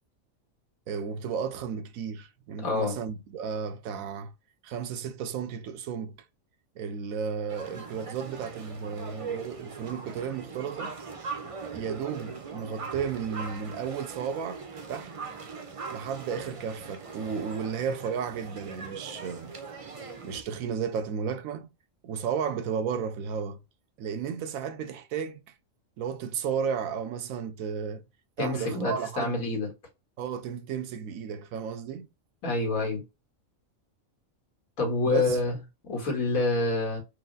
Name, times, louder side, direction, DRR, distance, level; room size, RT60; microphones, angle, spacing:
voice 1, 0.9-4.3 4.6-6.2 6.8-10.9 11.7-14.6 14.9-15.1 15.9-19.5 20.2-21.7 22.0-23.6 24.0-25.4 26.0-28.0 28.4-29.4 30.2-32.1 35.1-35.4, right 7 dB, 85° right, 1.0 m, -33 dB
voice 2, 2.6-3.0 28.4-29.7 32.4-33.0 34.8-35.5 35.9-37.0, left 3 dB, 85° left, 1.9 m, -27 dB
sound 1, 7.5-20.4, right 5 dB, 40° right, 0.4 m, -40 dB
4.8 x 2.0 x 3.8 m
omnidirectional pair, 1.4 m